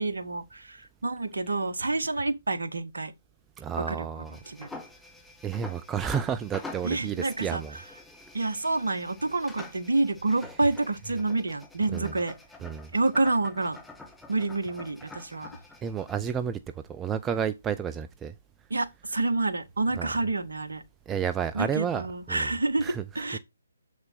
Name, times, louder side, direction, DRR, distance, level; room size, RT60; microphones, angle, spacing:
voice 1, 0.0-3.1 3.8-4.8 6.8-7.8 8.3-12.4 12.9-13.8 14.3-15.5 18.7-20.8 21.5-23.4, right 2 dB, 65° right, 1.1 m, -28 dB
voice 2, 3.6-4.4 5.4-7.7 11.9-12.1 12.6-12.9 15.8-18.3 20.0-20.1 21.1-22.5 22.8-23.0, right 8 dB, 10° right, 0.4 m, -31 dB
sound 1, 4.3-16.2, left 3 dB, 5° left, 0.9 m, -46 dB
7.3 x 6.1 x 3.9 m
figure-of-eight pair, 140°, 0 cm